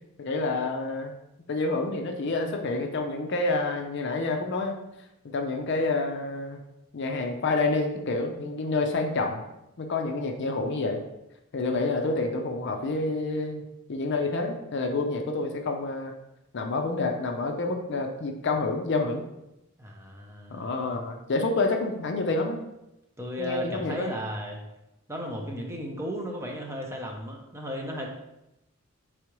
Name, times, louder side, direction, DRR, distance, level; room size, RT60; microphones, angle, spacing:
voice 1, 0.2-1.1 1.5-4.7 5.3-6.6 6.9-9.4 9.8-11.0 11.5-13.6 13.9-16.1 16.5-19.2 20.5-22.6 23.4-24.1, left 3 dB, 55° left, 4 dB, 0.5 m, -28 dB
voice 2, 19.8-20.9 23.2-24.6 25.1-28.1, equal, 10° right, 0 dB, 0.6 m, -35 dB
4.8 x 3.6 x 3.0 m, 0.91 s
head